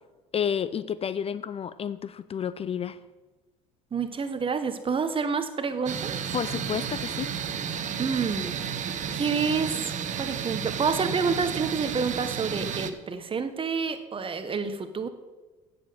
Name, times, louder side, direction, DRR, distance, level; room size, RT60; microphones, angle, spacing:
voice 1, 0.3-3.0 6.3-7.3, left 8 dB, 35° left, 15 dB, 0.5 m, -30 dB
voice 2, 3.9-6.2 8.0-8.6 9.1-15.1, right 5 dB, 30° right, 10 dB, 1.2 m, -28 dB
sound 1, 5.9-12.9, right 7 dB, 45° right, 0.9 m, -32 dB
8.7 x 7.9 x 6.8 m, 1.2 s
hypercardioid pair, 70°, 17 cm